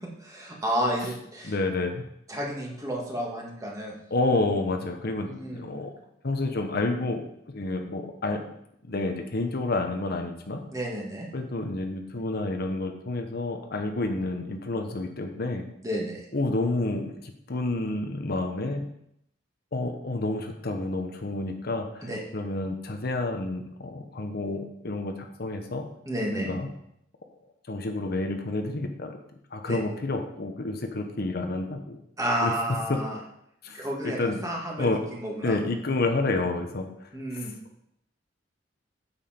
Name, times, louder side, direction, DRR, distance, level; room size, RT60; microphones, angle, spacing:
voice 1, 0.2-1.5 2.3-3.9 5.2-5.7 10.7-11.3 15.8-16.2 22.0-22.2 26.1-26.5 29.7-29.8 32.2-33.2 33.7-35.6 37.1-37.5, equal, 20° right, -2 dB, 2.1 m, -31 dB
voice 2, 1.4-2.1 4.1-5.9 6.2-8.4 8.8-10.6 11.3-15.7 16.3-18.9 19.7-25.9 26.3-26.7 27.7-29.1 29.5-32.0 32.4-32.5 32.9-33.0 33.6-34.4 34.8-35.0 35.4-37.1 37.4-37.5, left 2 dB, 55° left, 5 dB, 1.0 m, -29 dB
9.0 x 7.2 x 4.4 m, 0.76 s
head